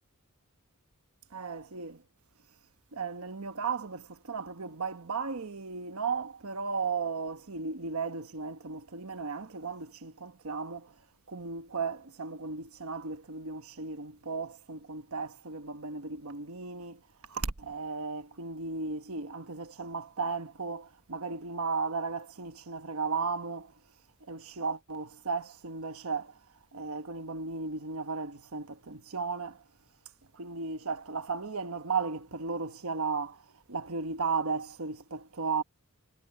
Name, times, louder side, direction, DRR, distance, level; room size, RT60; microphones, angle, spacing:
voice 1, 1.3-2.0 2.9-10.9 11.3-17.0 17.3-23.7 24.3-26.4 26.7-29.6 30.3-35.6, right 4 dB, 75° right, 1.2 m, -35 dB
head